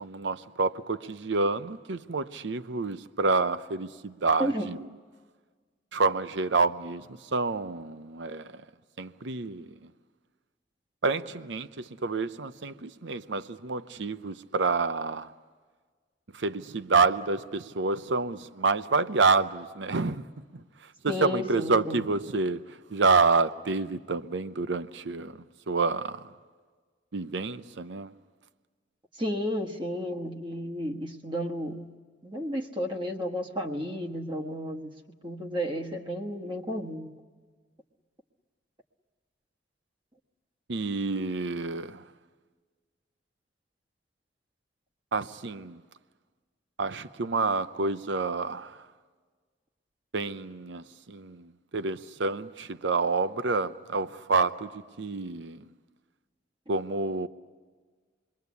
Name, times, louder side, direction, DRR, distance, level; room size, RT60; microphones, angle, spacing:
voice 1, 0.0-4.8 5.9-7.0 7.3-8.5 9.0-9.7 11.0-15.3 16.4-20.2 21.0-22.6 22.9-25.3 25.7-26.2 27.1-28.1 40.7-42.0 45.1-45.8 46.8-48.7 50.1-51.5 51.7-54.7 55.0-55.6 56.7-57.3, right 4 dB, 75° right, 0.7 m, -28 dB
voice 2, 21.1-22.0 29.1-31.9 32.2-34.9 35.2-37.1, equal, 25° right, 1.3 m, -32 dB
28.0 x 22.5 x 8.3 m
head